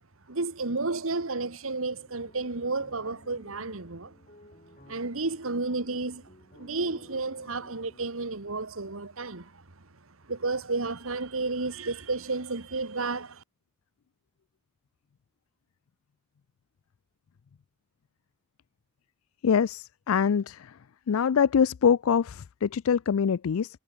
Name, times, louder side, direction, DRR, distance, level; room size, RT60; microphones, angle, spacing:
voice 1, 0.3-4.1 4.9-6.2 6.5-9.6 10.3-13.4, right 3 dB, 70° right, 1.6 m, -32 dB
sound 1, 1.9-8.1, left 1 dB, 35° left, 6.3 m, -56 dB
voice 2, 19.4-20.6 21.1-23.7, left 7 dB, 75° left, 0.4 m, -24 dB
head